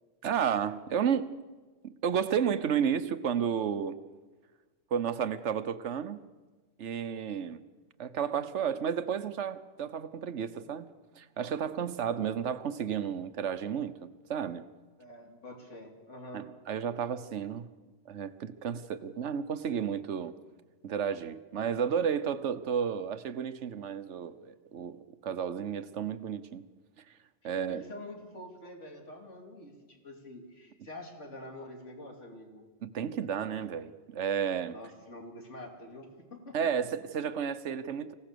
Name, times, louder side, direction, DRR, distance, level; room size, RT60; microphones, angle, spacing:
voice 1, 0.2-1.4 1.8-4.0 4.9-6.2 6.8-7.6 8.0-14.6 16.3-17.7 18.1-20.3 20.8-26.6 27.4-27.8 32.8-34.8 36.5-38.1, right 8 dB, 75° right, 12 dB, 1.2 m, -32 dB
voice 2, 15.0-16.5 27.4-32.6 34.7-36.6, left 1 dB, 80° left, 1 dB, 3.3 m, -46 dB
25.5 x 17.0 x 6.8 m, 1.3 s
omnidirectional pair, 1.2 m